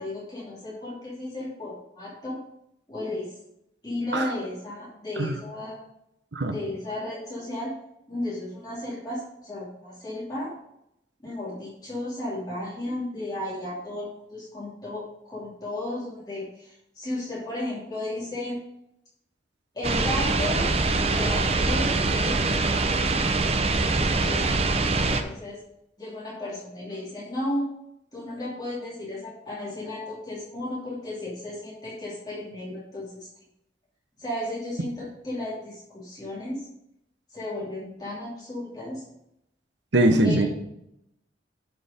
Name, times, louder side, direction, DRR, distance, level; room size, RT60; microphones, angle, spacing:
voice 1, 0.0-2.4 2.9-3.3 3.8-5.9 6.5-7.7 8.1-10.5 11.2-18.6 19.7-20.7 21.1-22.4 24.1-24.5 25.2-25.6 26.0-27.7 28.1-33.3 34.2-36.7 37.3-39.0 40.2-40.5, left 1 dB, 20° left, -7 dB, 2.7 m, -34 dB
sound 1, 19.8-25.2, right 3 dB, 35° right, 0.6 m, -24 dB
voice 2, 39.9-40.5, right 1 dB, 75° right, 7 dB, 1.1 m, -21 dB
11.0 x 4.9 x 5.1 m, 0.80 s
head